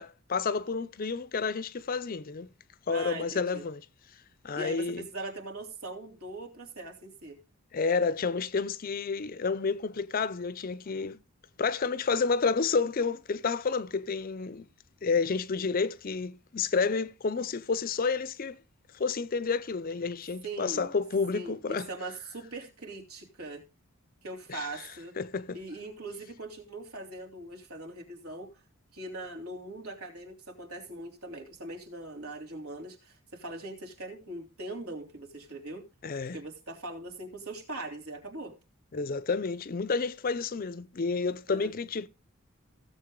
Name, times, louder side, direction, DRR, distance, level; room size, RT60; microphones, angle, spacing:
voice 1, 0.0-2.5 2.9-3.8 4.4-5.1 7.7-11.2 11.6-14.7 15.0-18.6 18.9-21.9 24.5-24.7 25.2-25.6 36.0-36.4 38.9-42.1, left 4 dB, 40° left, 0.5 m, -30 dB
voice 2, 2.9-3.6 4.6-7.4 20.4-20.9 21.3-23.6 24.2-25.2 25.5-28.5 28.9-35.8 36.3-38.5 41.5-41.7, right 2 dB, 75° right, 3.2 m, -41 dB
16.5 x 7.4 x 3.7 m
head